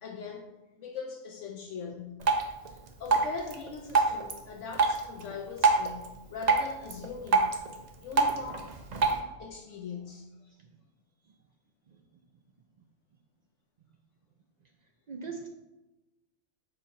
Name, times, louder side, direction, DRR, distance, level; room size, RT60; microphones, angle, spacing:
voice 1, 0.0-2.3 2.7-7.6 8.0-8.7 9.4-10.5, left 5 dB, 70° left, 0.9 m, -41 dB
Drip, 2.2-9.2, right 4 dB, 40° right, 0.6 m, -28 dB
voice 2, 15.1-15.5, right 5 dB, 85° right, 0.3 m, -41 dB
5.5 x 4.8 x 4.2 m
omnidirectional pair, 1.4 m